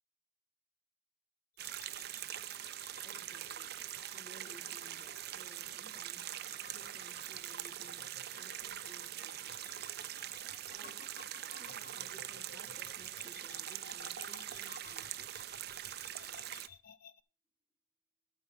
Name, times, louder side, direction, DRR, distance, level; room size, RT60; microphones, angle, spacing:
sound 1, 1.6-17.2, left 6 dB, 50° left, 0.5 m, -57 dB
sound 2, 1.6-16.7, right 12 dB, 55° right, 0.5 m, -43 dB
voice 1, 2.7-9.7 10.7-15.6, right 1 dB, 15° left, 2 dB, 2.4 m, -60 dB
12.0 x 4.7 x 6.4 m, 0.36 s
head